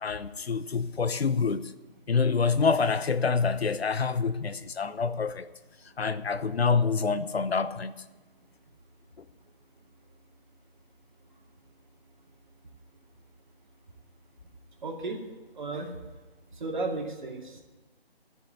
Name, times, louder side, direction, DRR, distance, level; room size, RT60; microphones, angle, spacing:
voice 1, 0.0-1.7 2.1-5.5 6.0-7.9, left 5 dB, 75° left, 0.9 m, -26 dB
voice 2, 14.8-15.2 15.5-15.9 16.5-17.6, right 3 dB, 50° right, 2.4 m, -34 dB
12.5 x 7.0 x 9.6 m
figure-of-eight pair, 170°, 31 cm